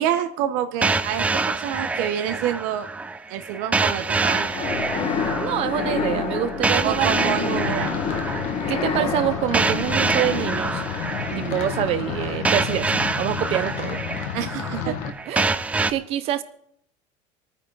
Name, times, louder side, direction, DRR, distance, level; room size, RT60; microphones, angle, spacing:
voice 1, 0.0-2.9 3.3-4.7 6.8-7.9 11.3-11.6 14.3-14.9, right 10 dB, 75° right, 9 dB, 1.1 m, -27 dB
sound 1, 0.8-15.9, right 3 dB, 10° right, 0.4 m, -26 dB
sound 2, 4.3-12.4, left 5 dB, 40° left, 1.8 m, -29 dB
voice 2, 5.4-7.9 8.7-10.8 11.4-14.0 14.7-15.0 15.3-15.5 15.9-16.4, right 12 dB, 45° right, 13 dB, 0.9 m, -26 dB
sound 3, 7.6-15.1, left 9 dB, 60° left, 1.6 m, -31 dB
25.5 x 9.4 x 4.1 m, 0.71 s
cardioid pair, 170°, 14 cm